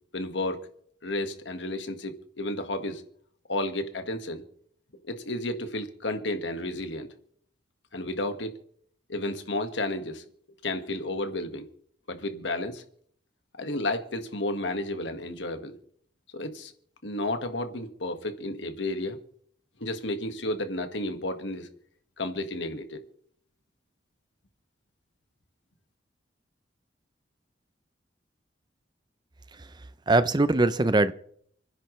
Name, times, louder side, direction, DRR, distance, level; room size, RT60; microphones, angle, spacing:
voice 1, 0.1-0.6 1.0-3.0 3.5-4.4 5.1-7.1 7.9-8.6 9.1-10.2 10.6-11.7 12.1-12.8 13.6-15.8 16.3-16.7 17.0-19.2 19.8-21.7 22.2-23.0, left 1 dB, 80° left, 1.7 m, -32 dB
voice 2, 29.5-31.1, right 2 dB, 25° right, 0.6 m, -23 dB
29.0 x 10.0 x 3.2 m
head